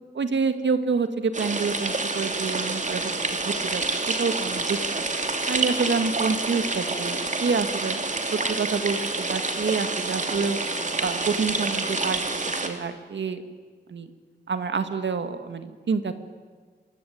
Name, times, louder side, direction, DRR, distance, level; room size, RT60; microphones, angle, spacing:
voice 1, 0.1-3.8 4.2-4.8 5.5-8.0 8.3-10.6 11.0-12.2 12.6-13.4 13.9-14.1 14.5-16.1, right 5 dB, 80° right, 9 dB, 2.1 m, -27 dB
sound 1, 1.3-12.7, right 3 dB, 40° right, 2.8 m, -28 dB
26.5 x 23.0 x 9.5 m, 1.5 s
wide cardioid pair, 120°, 18 cm